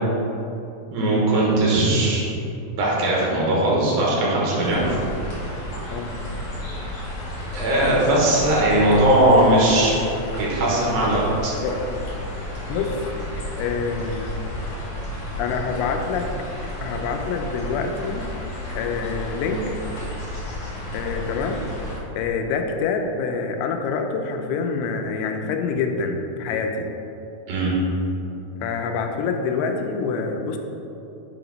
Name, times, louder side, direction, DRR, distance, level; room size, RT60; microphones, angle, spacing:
voice 1, 0.9-2.3 2.8-4.9 7.5-9.9 10.4-11.5 27.5-27.7, right 1 dB, 75° right, -5 dB, 2.8 m, -19 dB
sound 1, 4.6-22.0, left 1 dB, 60° left, 1.6 m, -32 dB
voice 2, 5.9-6.2 11.6-12.0 12.7-13.0 13.6-14.4 15.4-16.3 16.8-18.3 18.8-19.8 20.9-21.6 22.2-26.9 28.6-30.6, left 5 dB, 90° left, 4 dB, 2.5 m, -26 dB
7.5 x 2.9 x 5.1 m, 2.9 s
omnidirectional pair, 4.3 m